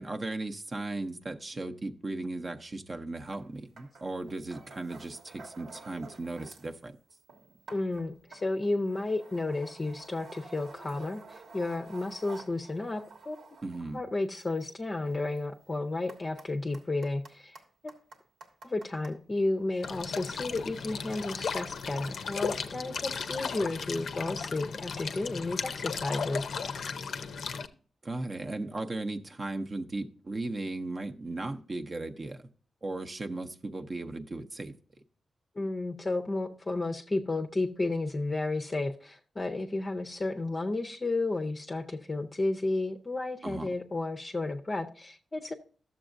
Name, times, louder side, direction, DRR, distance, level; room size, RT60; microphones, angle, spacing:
voice 1, 0.0-6.9 13.6-14.0 28.0-32.5 32.8-34.7 43.4-43.7, right 2 dB, 35° right, 0.6 m, -36 dB
sound 1, 3.3-3.5 3.8-6.8 7.1-19.2 19.9-22.7, right 3 dB, 85° right, 1.4 m, -52 dB
voice 2, 7.7-13.4 13.9-17.6 17.8-17.9 18.6-26.5 35.6-45.5, left 2 dB, 30° left, 0.6 m, -32 dB
sound 2, 19.8-27.7, left 6 dB, 75° left, 0.5 m, -36 dB
12.5 x 7.1 x 2.5 m
wide cardioid pair, 110°, 0 cm